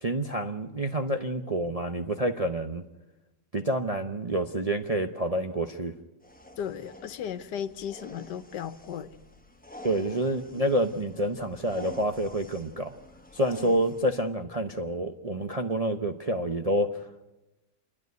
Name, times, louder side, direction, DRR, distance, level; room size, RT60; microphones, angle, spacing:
voice 1, 0.0-2.8 3.5-5.9 9.8-13.0 13.3-16.9, right 1 dB, 35° right, 4 dB, 0.6 m, -28 dB
sound 1, 6.2-14.2, left 1 dB, 5° left, 1.1 m, -49 dB
voice 2, 6.6-9.2 13.6-13.7, left 8 dB, 80° left, 12 dB, 1.5 m, -36 dB
29.0 x 11.0 x 9.4 m, 1.0 s
omnidirectional pair, 1.8 m